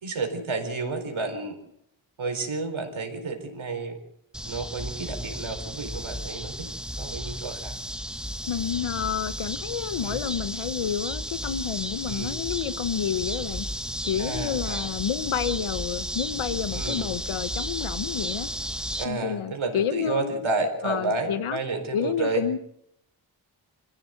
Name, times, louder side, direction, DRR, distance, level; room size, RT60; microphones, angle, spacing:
voice 1, 0.0-1.6 2.2-4.0 4.4-6.7 7.0-7.7 10.0-10.2 12.1-12.3 14.2-14.9 16.7-17.0 19.0-22.4, right 3 dB, 75° right, 4.4 m, -31 dB
sound 1, 4.3-19.0, equal, ahead, 1.8 m, -33 dB
voice 2, 8.5-13.7 14.0-18.5 19.0-20.4 20.8-21.6 21.9-22.6, left 8 dB, 85° left, 1.2 m, -29 dB
23.0 x 15.0 x 7.8 m
cardioid pair, 45°, 48 cm